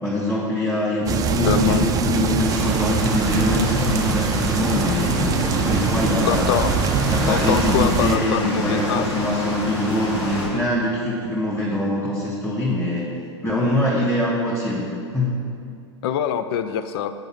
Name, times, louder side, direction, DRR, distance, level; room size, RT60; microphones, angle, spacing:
voice 1, 0.0-5.2 5.7-6.7 7.1-13.1 13.4-15.4, left 1 dB, 5° left, -6 dB, 1.7 m, -23 dB
sound 1, 1.1-8.2, right 6 dB, 25° right, 0.5 m, -23 dB
voice 2, 1.5-1.8 6.3-6.9 7.3-9.1 16.0-17.1, left 9 dB, 55° left, 11 dB, 0.5 m, -24 dB
sound 2, 2.5-10.5, left 1 dB, 75° left, 2.1 m, -28 dB
6.9 x 5.2 x 5.8 m, 2.4 s
hypercardioid pair, 100°, 15 cm